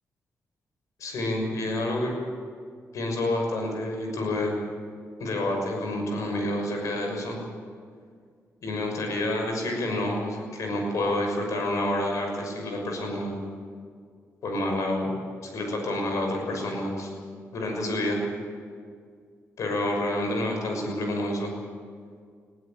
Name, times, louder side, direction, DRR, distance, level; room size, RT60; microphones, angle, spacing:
voice 1, 1.0-2.1 2.9-4.6 5.2-7.4 8.6-13.4 14.4-15.1 15.4-17.1 17.5-18.2 19.6-21.5, left 1 dB, 75° left, 2 dB, 6.2 m, -28 dB
21.0 x 16.0 x 8.9 m, 2.1 s
cardioid pair, 110°, 6 cm